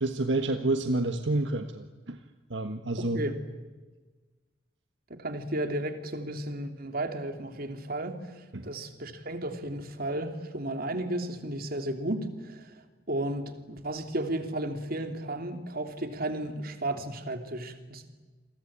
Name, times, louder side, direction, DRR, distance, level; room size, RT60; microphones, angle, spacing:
voice 1, 0.0-2.2 2.5-3.2 8.5-8.7, right 2 dB, 75° right, 7 dB, 1.5 m, -29 dB
voice 2, 3.0-3.4 5.1-8.2 8.6-12.7 13.1-18.1, right 1 dB, 55° right, 7 dB, 3.1 m, -33 dB
29.0 x 23.0 x 8.8 m, 1.3 s
head